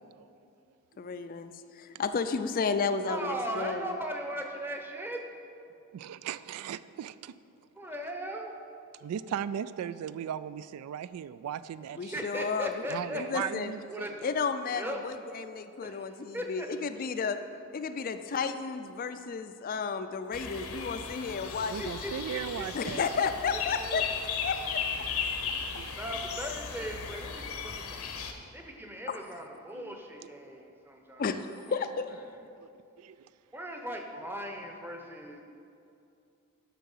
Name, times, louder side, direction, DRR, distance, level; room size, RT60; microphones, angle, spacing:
voice 1, 1.0-3.9 12.0-12.9 13.1-13.7 14.2-17.4 17.7-21.9 22.7-24.0 24.4-24.8 29.1-29.2 31.2-31.4 31.7-32.2, left 5 dB, 40° left, 9 dB, 0.3 m, -32 dB
voice 2, 3.1-5.2 7.8-8.5 12.0-13.5 13.9-14.4 14.7-15.0 15.8-16.7 21.4-24.0 26.0-28.1 28.5-31.4 31.7-31.9 32.3-32.4 33.5-35.4, equal, 10° right, 3 dB, 0.8 m, -39 dB
voice 3, 5.9-7.3 9.0-12.3 12.9-14.3 21.7-23.0 25.5-25.9 29.7-30.0 32.6-32.7 33.0-33.2, right 9 dB, 85° right, 16 dB, 0.3 m, -37 dB
sound 1, 20.3-28.3, left 6 dB, 80° left, 0.9 m, -36 dB
11.0 x 5.8 x 5.5 m, 2.6 s
head